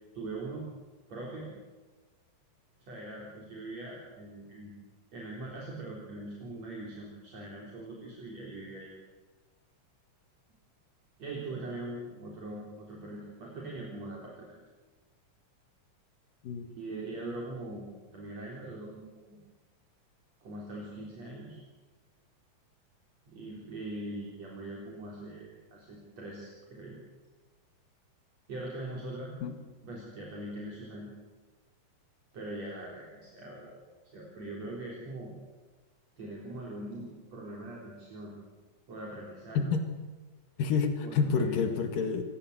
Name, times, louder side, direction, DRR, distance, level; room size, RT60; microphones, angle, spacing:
voice 1, 0.1-0.7 1.1-1.6 2.9-4.7 5.1-9.0 11.2-14.6 16.6-19.4 20.4-21.6 23.3-27.0 28.5-29.3 29.8-31.1 32.3-35.3 36.2-38.3 38.9-39.6 41.0-41.6, right 2 dB, 50° right, -3 dB, 4.9 m, -42 dB
voice 2, 39.6-39.9 40.6-42.2, left 5 dB, 90° left, 6 dB, 3.6 m, -28 dB
27.0 x 17.0 x 8.1 m, 1.3 s
omnidirectional pair, 3.8 m